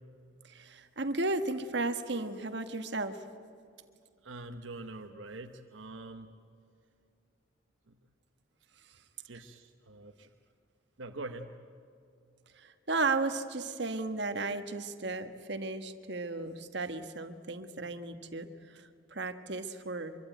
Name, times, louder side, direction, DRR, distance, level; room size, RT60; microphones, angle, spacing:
voice 1, 0.5-3.2 12.6-20.2, right 3 dB, 60° right, 8 dB, 1.4 m, -34 dB
voice 2, 4.2-6.3 7.9-8.0 9.3-10.3 11.0-11.5, right 2 dB, 80° right, 5 dB, 1.0 m, -44 dB
24.5 x 23.5 x 9.2 m, 2.4 s
head